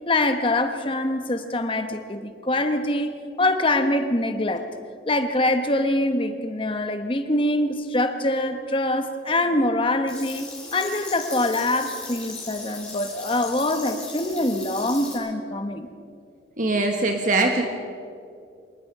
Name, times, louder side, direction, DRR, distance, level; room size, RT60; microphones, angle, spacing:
voice 1, 0.1-4.7 5.1-15.9, left 1 dB, 30° left, 7 dB, 1.1 m, -24 dB
sound 1, 10.1-15.1, left 3 dB, 5° left, 6.5 m, -38 dB
voice 2, 16.6-17.6, right 2 dB, 45° right, 3 dB, 1.5 m, -22 dB
25.0 x 20.0 x 5.5 m, 2.4 s
head